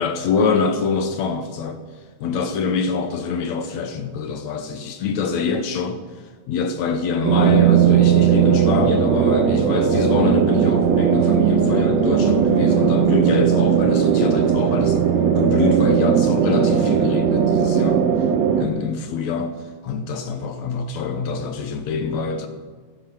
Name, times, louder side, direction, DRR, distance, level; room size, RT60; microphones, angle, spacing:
voice 1, 0.0-1.8 2.2-6.0 6.5-15.0 15.4-18.1 18.6-19.6 19.8-22.5, left 5 dB, 70° left, 8 dB, 2.0 m, -25 dB
sound 1, 7.2-18.7, right 8 dB, 65° right, 2.1 m, -17 dB
15.0 x 12.5 x 6.0 m, 1.5 s
omnidirectional pair, 3.6 m